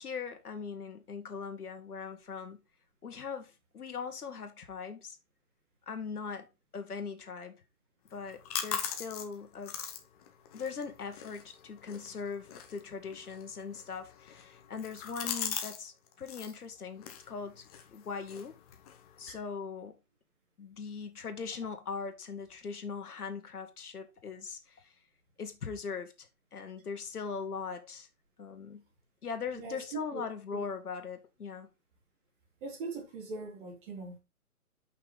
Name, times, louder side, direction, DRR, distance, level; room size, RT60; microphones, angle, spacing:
voice 1, 0.0-2.6 3.0-5.2 5.9-6.5 6.7-7.5 8.1-9.8 10.5-17.6 17.9-18.5 19.2-19.9 20.6-24.9 25.4-28.1 28.4-28.8 29.2-31.7, left 5 dB, 80° left, 1.7 m, -40 dB
sound 1, 8.1-15.8 16.1-16.6 17.0-19.3, left 8 dB, 25° left, 1.0 m, -41 dB
voice 2, 29.5-30.2 30.5-30.6 32.6-34.2, right 4 dB, 35° right, 3.5 m, -41 dB
6.8 x 5.7 x 3.9 m
hypercardioid pair, 145°, 44 cm